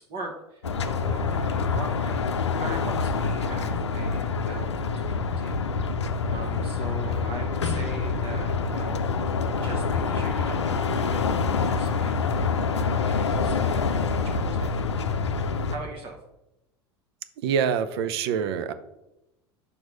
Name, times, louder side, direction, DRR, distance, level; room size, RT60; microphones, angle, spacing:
voice 1, 0.1-2.2 2.6-5.7 6.3-9.1 9.6-15.2 15.7-16.2, right 2 dB, 40° right, 1 dB, 1.1 m, -40 dB
sound 1, 0.6-15.8, left 4 dB, 85° left, 0.5 m, -26 dB
voice 2, 17.4-18.7, right 7 dB, 65° right, 12 dB, 0.6 m, -25 dB
5.3 x 4.6 x 5.1 m, 0.92 s
hypercardioid pair, 80°, 14 cm